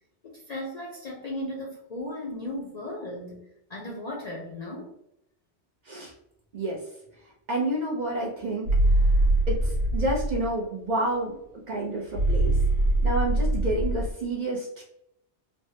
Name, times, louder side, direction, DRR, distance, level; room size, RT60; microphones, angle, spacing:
voice 1, 0.2-3.4 3.7-4.9, left 1 dB, 50° left, -3 dB, 0.5 m, -36 dB
voice 2, 7.5-8.7 9.0-9.2 9.5-11.4 11.7-12.6 13.0-14.8, right 1 dB, 50° right, -2 dB, 0.6 m, -29 dB
sound 1, 8.7-10.5 12.1-14.1, right 1 dB, 75° right, 1.1 m, -23 dB
3.3 x 2.1 x 2.7 m, 0.80 s
omnidirectional pair, 1.2 m